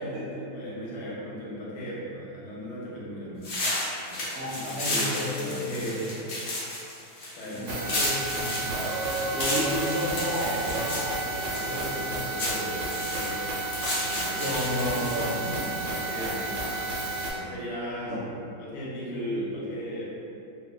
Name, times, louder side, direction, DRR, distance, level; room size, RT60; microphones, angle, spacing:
voice 1, 0.0-3.5 4.1-6.1 7.4-7.8 10.0-10.2 11.5-13.4 14.1-14.6 14.9-16.8 17.3-18.2 18.6-20.1, equal, 75° left, -6 dB, 1.2 m, -37 dB
sound 1, 3.4-15.5, left 1 dB, 60° left, 0.7 m, -33 dB
voice 2, 4.3-6.1 7.5-8.6 9.3-12.1 14.4-15.5 18.0-18.2, left 1 dB, 70° right, -7 dB, 1.0 m, -32 dB
sound 2, 7.7-17.3, right 2 dB, 85° right, 1.3 m, -31 dB
3.0 x 2.1 x 2.2 m, 2.6 s
omnidirectional pair, 1.9 m